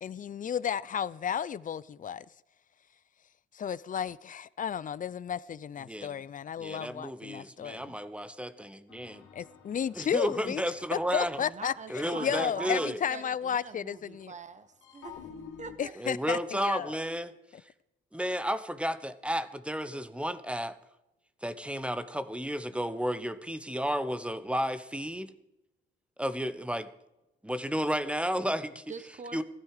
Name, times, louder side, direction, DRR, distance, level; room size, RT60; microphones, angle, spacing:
voice 1, 0.0-2.2 3.6-7.9 9.4-10.6 11.1-14.3 15.8-16.9, left 8 dB, 40° left, 0.6 m, -33 dB
voice 2, 5.8-6.2 6.6-9.3 9.9-11.4 11.9-13.0 16.0-17.3 17.6-17.7 18.1-20.8 21.4-25.3 26.2-26.9 27.4-28.8 29.3-29.4, equal, 5° right, 1.0 m, -32 dB
sound 1, 8.9-14.1 14.8-15.8, left 7 dB, 85° left, 2.8 m, -52 dB
voice 3, 11.4-15.3 15.6-15.9 28.9-29.4, right 5 dB, 35° right, 1.4 m, -44 dB
15.5 x 13.0 x 5.0 m
cardioid pair, 90°, 20 cm